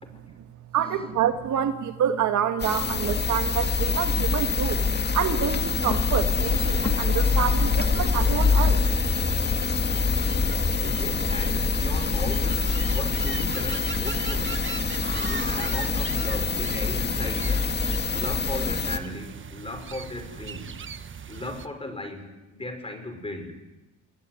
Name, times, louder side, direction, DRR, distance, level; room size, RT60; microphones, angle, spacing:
voice 1, 0.7-4.8 5.1-8.8, right 9 dB, 70° right, 7 dB, 2.0 m, -27 dB
sound 1, 2.6-19.0, left 5 dB, 35° left, 2.0 m, -25 dB
sound 2, 6.4-21.7, right 7 dB, 40° right, 1.4 m, -39 dB
voice 2, 10.7-14.7 15.3-17.8 18.1-20.8 21.3-23.6, left 2 dB, 20° left, 7 dB, 6.0 m, -37 dB
28.5 x 20.0 x 9.7 m, 1.1 s
cardioid pair, 90°, 30 cm